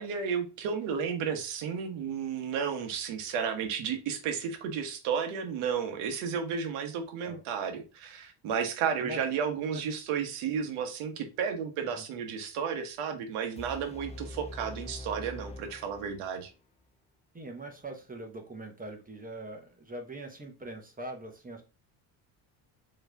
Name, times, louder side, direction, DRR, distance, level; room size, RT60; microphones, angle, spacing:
voice 1, 0.0-16.5, right 7 dB, 85° right, 6 dB, 1.2 m, -33 dB
sound 1, 13.6-16.5, left 2 dB, 15° left, 0.4 m, -44 dB
voice 2, 17.3-21.6, right 1 dB, 15° right, 4 dB, 1.1 m, -42 dB
4.6 x 3.2 x 3.4 m, 0.30 s
cardioid pair, 105°, 48 cm